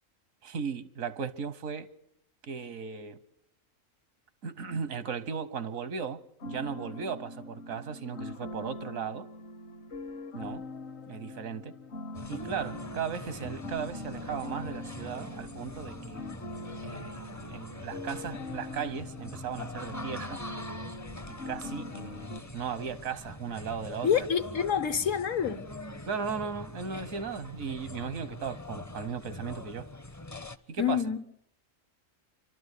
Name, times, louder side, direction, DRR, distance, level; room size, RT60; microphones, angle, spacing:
voice 1, 0.4-1.9 2.5-3.2 4.4-9.3 10.3-10.6 11.1-11.7 12.3-16.3 16.8-20.4 21.3-24.3 26.1-29.9 30.7-31.0, right 6 dB, 85° right, 1.4 m, -36 dB
sound 1, 6.4-22.4, left 2 dB, 60° left, 1.2 m, -42 dB
sound 2, 12.1-30.6, left 1 dB, 20° left, 0.5 m, -43 dB
voice 2, 24.0-25.6 30.8-31.2, left 8 dB, 75° left, 1.6 m, -27 dB
28.5 x 12.5 x 8.2 m
omnidirectional pair, 1.4 m